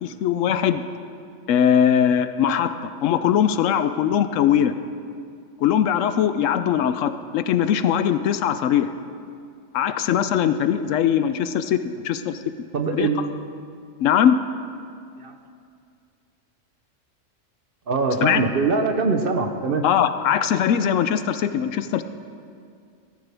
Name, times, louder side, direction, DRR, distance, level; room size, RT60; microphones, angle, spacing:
voice 1, 0.0-0.8 1.5-4.7 5.6-8.9 9.7-11.8 12.0-12.4 12.9-13.1 14.0-14.4 18.2-18.4 19.8-22.0, left 9 dB, 75° left, 11 dB, 0.9 m, -20 dB
voice 2, 12.7-13.2 15.2-15.3 17.9-19.8, right 4 dB, 50° right, 5 dB, 0.9 m, -22 dB
15.0 x 13.5 x 3.4 m, 2.3 s
omnidirectional pair, 1.3 m